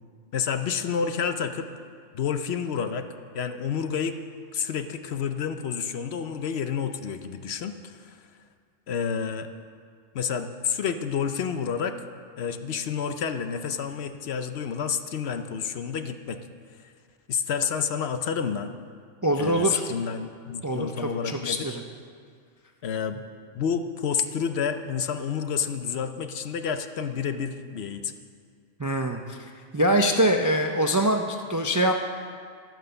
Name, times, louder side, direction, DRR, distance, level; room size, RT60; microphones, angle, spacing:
voice 1, 0.3-1.7 2.1-3.1 3.3-4.2 4.5-8.2 8.9-9.5 10.1-12.0 12.4-16.4 16.8-16.9 17.3-18.7 19.4-21.8 22.8-23.2 23.5-28.1, left 7 dB, 65° left, 9 dB, 0.9 m, -29 dB
voice 2, 19.2-19.8 20.6-21.8 28.8-31.9, right 1 dB, 30° right, 3 dB, 0.3 m, -24 dB
12.0 x 9.2 x 6.8 m, 2.1 s
omnidirectional pair, 1.3 m